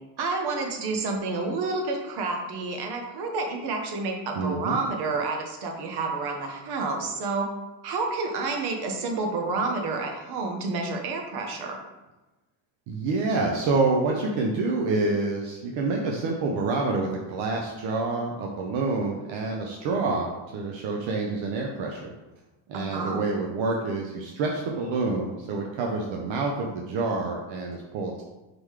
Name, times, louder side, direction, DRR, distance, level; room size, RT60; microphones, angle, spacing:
voice 1, 0.2-7.5 7.8-11.8 22.7-23.2, right 3 dB, 55° right, 2 dB, 1.3 m, -29 dB
voice 2, 4.3-4.8 12.9-22.1 22.7-28.2, right 3 dB, 75° right, 0 dB, 1.0 m, -27 dB
5.0 x 3.9 x 4.8 m, 1.1 s
cardioid pair, 120°, 46 cm